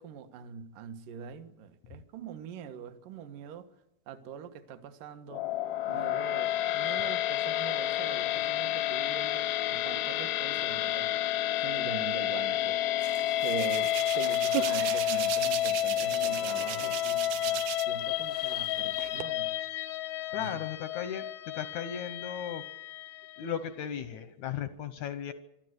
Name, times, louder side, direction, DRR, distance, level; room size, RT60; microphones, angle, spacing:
voice 1, 0.0-3.7 4.1-5.5 5.9-12.8 13.4-19.6 20.3-20.6, right 7 dB, 65° right, 9 dB, 2.8 m, -43 dB
sound 1, 5.3-23.5, left 13 dB, 90° left, 2.9 m, -30 dB
Hands, 13.0-18.0 18.3-19.2, right 14 dB, 85° right, 2.9 m, -37 dB
voice 2, 20.3-21.3 21.5-22.6 23.4-25.3, left 9 dB, 75° left, 12 dB, 1.7 m, -36 dB
25.5 x 13.0 x 8.1 m, 0.90 s
omnidirectional pair, 4.4 m